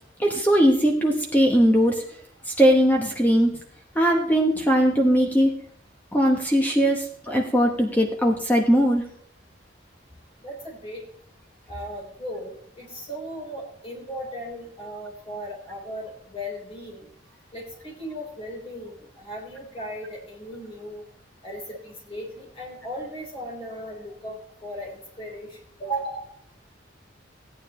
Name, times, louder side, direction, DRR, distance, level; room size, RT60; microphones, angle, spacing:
voice 1, 0.2-2.0 2.5-3.5 3.9-5.6 6.1-9.0, equal, 10° left, 1 dB, 1.1 m, -20 dB
voice 2, 10.4-11.0 11.7-17.1 17.5-21.0 21.4-26.3, equal, 30° left, -2 dB, 3.9 m, -36 dB
15.5 x 9.4 x 3.1 m, 0.65 s
head